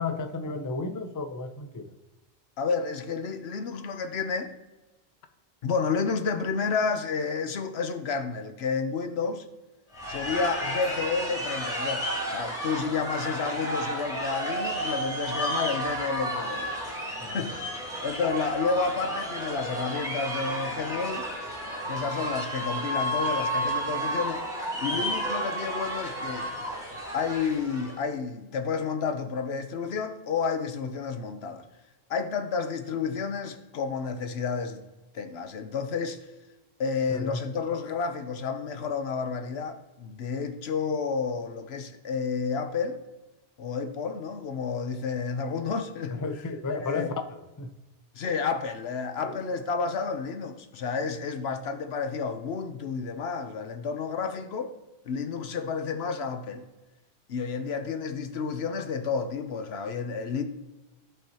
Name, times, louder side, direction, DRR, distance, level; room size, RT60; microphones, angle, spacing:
voice 1, 0.0-1.9 17.2-17.5 24.9-25.0 37.1-37.4 46.1-47.7 49.2-49.3, left 3 dB, 25° left, 0.5 m, -33 dB
voice 2, 2.6-4.5 5.6-9.4 10.1-16.8 17.3-17.7 18.0-21.3 21.9-24.4 24.8-26.5 27.1-31.6 32.1-34.9 35.1-36.2 36.8-43.0 43.6-46.2 46.8-47.1 48.1-54.7 55.1-56.6 57.3-60.4, left 5 dB, 80° left, 1.0 m, -30 dB
sound 1, 9.9-28.0, right 1 dB, 5° right, 2.5 m, -32 dB
15.5 x 5.4 x 2.9 m
omnidirectional pair, 1.1 m